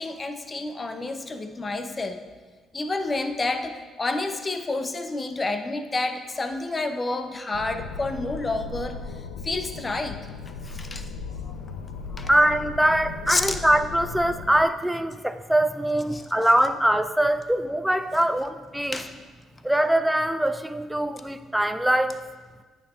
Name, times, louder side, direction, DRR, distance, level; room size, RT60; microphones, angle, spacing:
voice 1, 0.0-2.2 2.7-9.0 9.4-10.2 10.4-11.1 11.4-11.5 12.1-12.3 13.3-13.6 16.1-16.3 18.9-19.1, left 2 dB, 30° left, 7 dB, 0.8 m, -29 dB
sound 1, 7.5-14.6, left 4 dB, 85° left, 0.4 m, -37 dB
voice 2, 12.3-19.0 19.6-22.2, right 1 dB, 5° right, 10 dB, 0.5 m, -23 dB
9.6 x 8.4 x 2.5 m, 1.4 s
hypercardioid pair, 55°, 0 cm